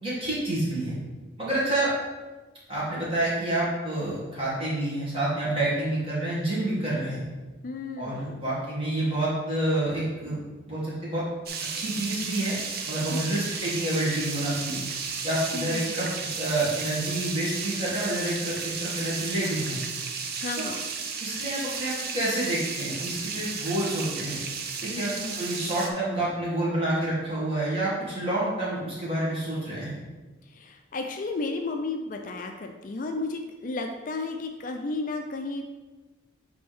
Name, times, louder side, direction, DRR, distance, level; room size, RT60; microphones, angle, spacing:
voice 1, 0.0-1.0 1.4-1.9 2.7-7.2 8.0-11.2 11.7-12.6 12.9-14.8 15.2-19.8 20.6-20.7 21.2-24.4 24.8-30.0, right 1 dB, 30° right, -8 dB, 2.1 m, -28 dB
voice 2, 7.6-8.5 13.1-13.2 15.5-15.9 20.4-20.9 24.9-25.5 30.5-35.6, left 3 dB, 40° left, 4 dB, 0.4 m, -33 dB
sound 1, 11.5-25.9, right 5 dB, 50° right, 0.6 m, -34 dB
8.6 x 3.5 x 3.5 m, 1.2 s
head